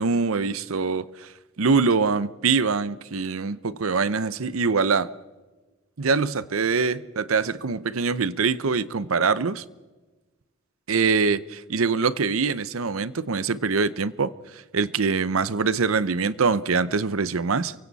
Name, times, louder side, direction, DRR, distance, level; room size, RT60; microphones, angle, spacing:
voice 1, 0.0-1.3 1.6-5.1 6.0-9.6 10.9-17.7, right 4 dB, 70° right, 0.7 m, -24 dB
29.0 x 24.0 x 4.1 m
head